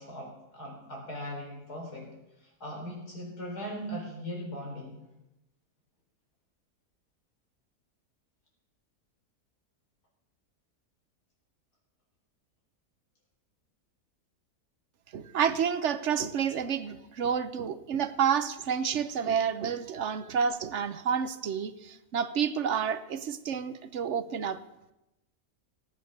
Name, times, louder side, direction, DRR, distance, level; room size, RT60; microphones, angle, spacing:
voice 1, 0.0-2.1 2.4-5.0, equal, 90° left, -1 dB, 4.7 m, -39 dB
voice 2, 15.1-24.6, right 7 dB, 55° right, 12 dB, 1.0 m, -29 dB
17.5 x 8.7 x 6.5 m, 0.92 s
omnidirectional pair, 1.6 m